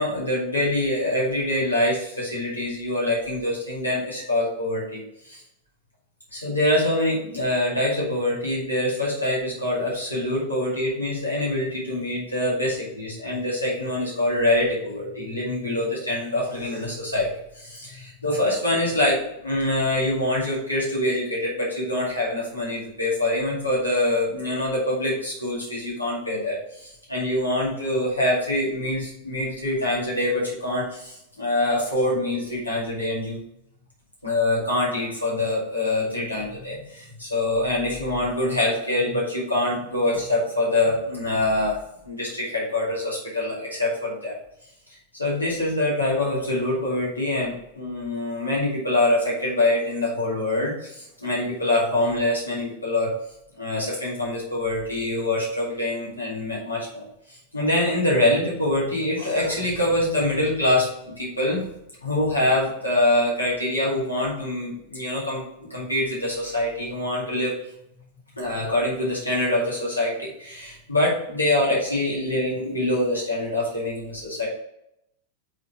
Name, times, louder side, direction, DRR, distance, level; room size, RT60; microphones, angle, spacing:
voice 1, 0.0-5.4 6.3-17.3 17.5-33.4 34.2-41.8 42.0-44.4 45.1-53.1 53.6-61.6 62.0-65.4 65.7-67.5 68.4-74.5, left 1 dB, 85° left, -5 dB, 2.2 m, -25 dB
6.2 x 4.1 x 4.0 m, 0.80 s
figure-of-eight pair, 90°, 0 cm